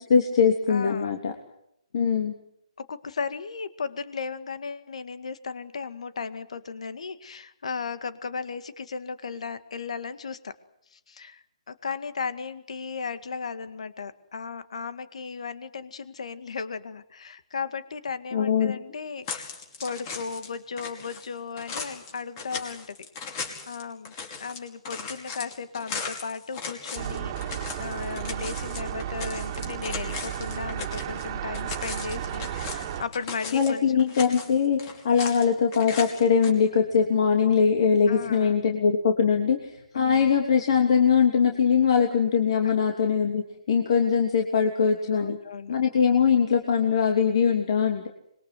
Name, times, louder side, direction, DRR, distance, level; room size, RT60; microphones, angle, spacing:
voice 1, 0.0-1.3 1.9-2.3 18.3-18.8 33.5-45.4 45.7-48.1, left 6 dB, 50° left, 3 dB, 3.1 m, -22 dB
voice 2, 0.7-1.2 2.8-10.6 10.9-19.5 19.8-23.0 23.4-27.3 27.8-33.8 35.1-35.4 38.1-38.6 39.9-40.3 42.6-42.7 45.1-45.7, left 5 dB, 65° left, 11 dB, 1.9 m, -36 dB
sound 1, 19.3-20.5 20.8-31.3 31.5-33.7 34.0-35.5 35.7-36.5, left 5 dB, 30° left, 5.3 m, -38 dB
sound 2, 26.9-33.0, right 10 dB, 30° right, 2.3 m, -33 dB
25.5 x 22.5 x 7.9 m, 0.78 s
hypercardioid pair, 150°, 4 cm